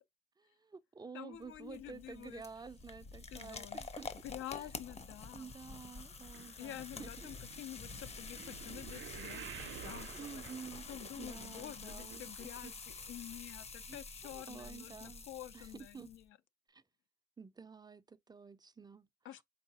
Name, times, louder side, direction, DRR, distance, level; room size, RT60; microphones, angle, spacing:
voice 1, 0.4-4.1 4.5-4.7 5.3-7.3 7.9-8.1 10.1-10.9 11.2-12.7 13.9-15.3 15.5-16.1 16.7-16.8 17.4-19.4, right 5 dB, 20° right, 0.4 m, -51 dB
voice 2, 1.1-2.4 3.3-3.8 4.2-5.5 6.6-10.4 10.9-16.4 19.2-19.4, left 12 dB, 85° left, 0.5 m, -49 dB
sound 1, 1.3-16.2, left 4 dB, 30° left, 0.6 m, -49 dB
Purr, 2.7-3.8 4.4-5.5 6.2-8.3, left 3 dB, 55° left, 1.1 m, -60 dB
sound 2, 6.2-12.6 12.9-13.4 13.9-14.0 14.3-14.4, right 10 dB, 75° right, 0.5 m, -51 dB
4.6 x 3.9 x 2.7 m
cardioid pair, 90°, 20 cm